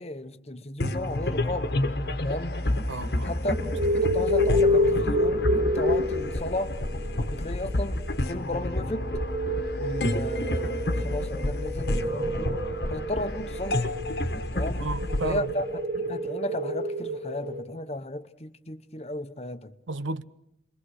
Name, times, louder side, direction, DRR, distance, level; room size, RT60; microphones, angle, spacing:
voice 1, 0.0-1.8 2.2-2.6 3.2-3.6 4.0-6.8 7.3-9.1 9.8-13.9 14.5-14.9 15.2-19.7, left 1 dB, 35° left, 1.0 m, -34 dB
sound 1, 0.8-16.4, left 1 dB, 55° left, 1.4 m, -30 dB
voice 2, 2.9-3.3 14.8-15.5 19.9-20.2, right 2 dB, 80° right, 0.9 m, -32 dB
sound 2, 3.4-17.6, left 1 dB, 35° right, 1.7 m, -29 dB
29.5 x 22.5 x 6.4 m
head